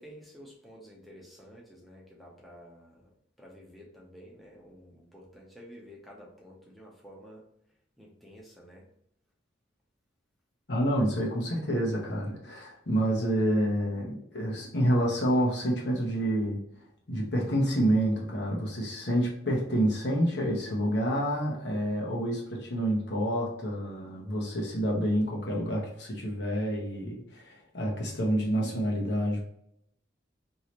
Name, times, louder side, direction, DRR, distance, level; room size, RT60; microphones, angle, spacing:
voice 1, 0.0-3.1 3.4-7.4 8.0-8.9, equal, ahead, -4 dB, 0.7 m, -51 dB
voice 2, 10.7-16.6 17.1-29.4, equal, 65° left, -2 dB, 0.9 m, -28 dB
3.1 x 2.8 x 2.9 m, 0.73 s
head